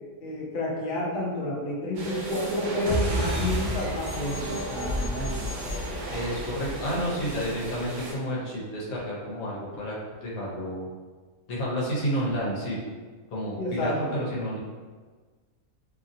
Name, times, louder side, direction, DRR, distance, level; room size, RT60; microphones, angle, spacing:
voice 1, 0.2-5.4 13.6-14.1, left 1 dB, 55° left, -3 dB, 0.7 m, -30 dB
sound 1, 2.0-8.1, right 2 dB, 65° right, 0.9 m, -36 dB
sound 2, 2.9-7.8, equal, 50° right, 0.6 m, -31 dB
voice 2, 6.1-10.9 11.5-12.8 13.3-14.6, equal, 80° left, -5 dB, 1.2 m, -30 dB
2.8 x 2.6 x 2.6 m, 1.4 s
omnidirectional pair, 1.5 m